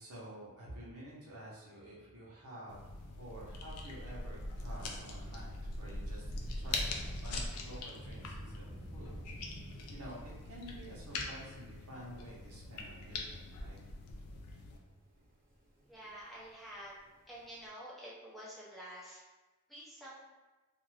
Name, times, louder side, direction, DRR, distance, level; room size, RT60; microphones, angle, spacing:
voice 1, 0.0-2.8 3.2-13.8, right 1 dB, 75° right, -6 dB, 0.9 m, -50 dB
sound 1, 2.7-14.8, left 2 dB, 80° left, 0.4 m, -42 dB
Thunder / Rain, 5.3-17.7, equal, 40° right, 0.7 m, -53 dB
voice 2, 15.9-16.9 17.3-19.2 19.7-20.2, equal, ahead, -8 dB, 0.6 m, -48 dB
2.5 x 2.4 x 3.2 m, 1.2 s
head